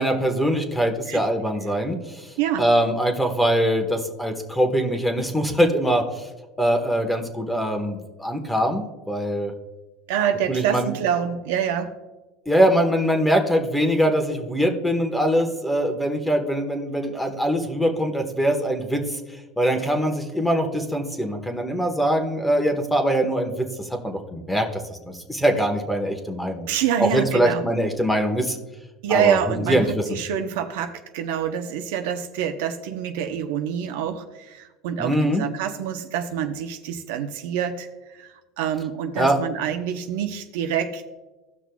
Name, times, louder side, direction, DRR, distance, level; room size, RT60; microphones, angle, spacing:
voice 1, 0.0-6.3 6.6-9.5 10.5-10.9 12.5-19.0 19.6-23.7 24.0-26.7 27.0-28.6 29.1-30.2 35.0-35.4 39.2-39.4, equal, 5° left, 4 dB, 1.3 m, -23 dB
voice 2, 10.1-11.9 26.7-27.6 29.0-41.1, right 9 dB, 80° right, 6 dB, 0.8 m, -26 dB
17.0 x 6.1 x 2.3 m, 1.1 s
supercardioid pair, 125°, 0 cm